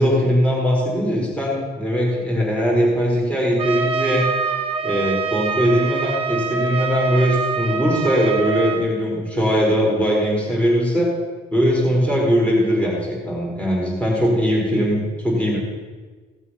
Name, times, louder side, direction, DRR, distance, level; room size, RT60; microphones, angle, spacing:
voice 1, 0.0-4.2 4.8-11.1 11.5-15.6, equal, 5° left, -4 dB, 4.2 m, -20 dB
Trumpet, 3.6-8.9, right 5 dB, 35° right, 1.1 m, -25 dB
17.0 x 6.2 x 5.6 m, 1.4 s
cardioid pair, 110°, 17 cm